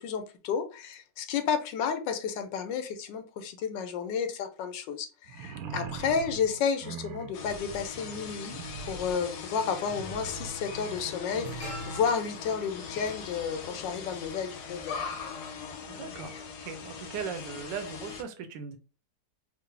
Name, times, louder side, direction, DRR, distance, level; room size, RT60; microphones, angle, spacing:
voice 1, 0.0-15.0, left 6 dB, 90° left, 1.4 m, -32 dB
sound 1, 5.3-12.1, right 6 dB, 70° right, 0.9 m, -42 dB
sound 2, 7.3-18.2, left 6 dB, 70° left, 1.2 m, -41 dB
sound 3, 8.5-8.6 9.8-10.1 10.3-14.6 14.9-15.1, equal, 35° left, 1.4 m, -47 dB
voice 2, 15.9-16.3 16.6-18.8, right 6 dB, 90° right, 1.4 m, -38 dB
4.8 x 2.0 x 3.2 m
omnidirectional pair, 1.9 m